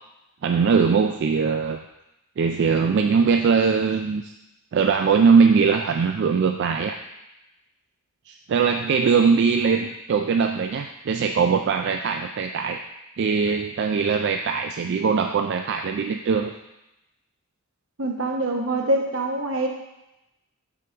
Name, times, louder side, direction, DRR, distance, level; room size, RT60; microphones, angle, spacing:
voice 1, 0.4-1.8 2.4-4.3 4.7-7.0 8.3-12.8 13.2-16.6, right 5 dB, 55° right, 5 dB, 0.3 m, -21 dB
voice 2, 18.0-19.7, right 1 dB, 80° right, 1 dB, 1.1 m, -24 dB
6.1 x 3.5 x 6.0 m, 0.91 s
head